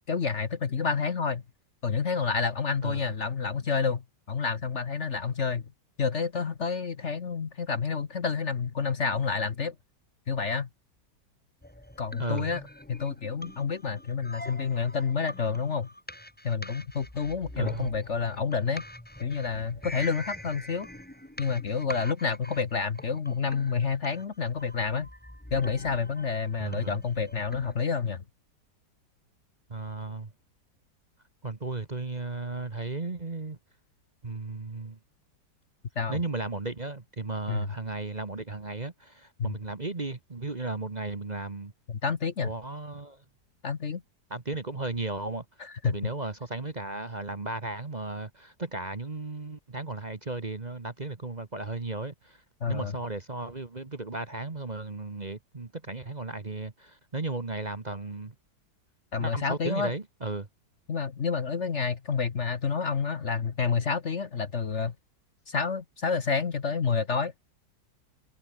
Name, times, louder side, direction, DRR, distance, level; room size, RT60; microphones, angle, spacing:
voice 1, 0.1-1.4 1.8-5.7 6.0-9.8 10.3-10.7 12.0-12.6 12.9-15.9 16.4-18.8 19.2-20.9 21.4-25.1 25.5-28.2 35.9-36.2 37.5-37.7 39.4-39.5 41.9-42.5 43.6-44.0 45.6-46.0 52.6-53.0 59.1-59.9 60.9-64.9 65.5-67.3, left 5 dB, 45° left, 1.4 m, -29 dB
sound 1, 11.6-27.8, left 1 dB, 5° left, 1.9 m, -44 dB
voice 2, 12.2-12.5 17.6-17.9 26.6-26.9 29.7-30.3 31.4-33.6 34.2-35.0 36.1-41.7 42.4-43.2 44.3-45.4 45.8-52.4 52.7-58.3 59.2-60.5, right 3 dB, 25° right, 1.4 m, -35 dB
omnidirectional pair, 1.8 m